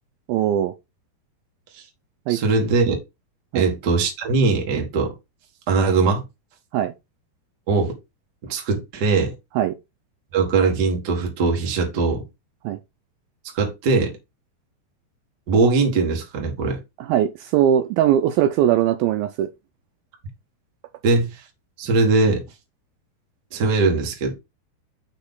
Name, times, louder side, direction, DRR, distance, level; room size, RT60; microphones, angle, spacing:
voice 1, 0.3-0.7 2.3-2.4 3.5-3.7 6.7-6.9 9.6-9.8 12.6-12.8 17.0-19.5, right 11 dB, 80° right, 2.2 m, -20 dB
voice 2, 2.3-3.0 3.5-5.1 5.7-6.2 7.7-7.9 8.4-9.3 10.3-12.2 13.5-14.1 15.5-16.8 21.0-21.4 21.8-22.5 23.5-24.3, right 4 dB, 60° right, 1.0 m, -20 dB
5.8 x 4.1 x 5.3 m
omnidirectional pair, 4.7 m